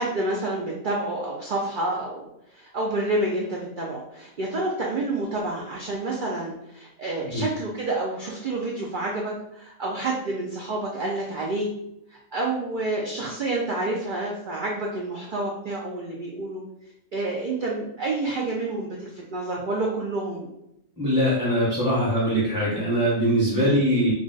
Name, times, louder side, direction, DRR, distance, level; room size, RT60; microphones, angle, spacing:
voice 1, 0.0-2.3 2.5-11.7 12.1-16.6 17.1-20.5 23.5-23.8, right 2 dB, 75° right, -3 dB, 0.4 m, -29 dB
voice 2, 21.0-24.1, equal, 5° right, -9 dB, 0.9 m, -22 dB
2.3 x 2.3 x 3.8 m, 0.83 s
omnidirectional pair, 1.4 m